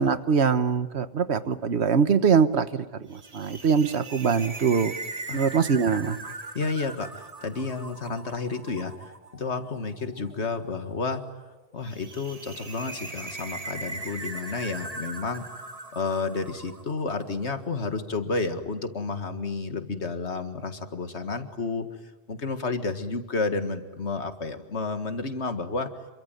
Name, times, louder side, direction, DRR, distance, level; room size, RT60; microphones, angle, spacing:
voice 1, 0.0-4.9 5.3-6.2, right 6 dB, 70° right, 12 dB, 1.4 m, -23 dB
sound 1, 3.1-17.5, right 2 dB, 35° right, 1.3 m, -40 dB
voice 2, 6.5-15.5 15.9-21.9 22.3-25.9, left 3 dB, 75° left, 8 dB, 2.1 m, -31 dB
27.5 x 23.5 x 9.2 m, 1.1 s
omnidirectional pair, 1.1 m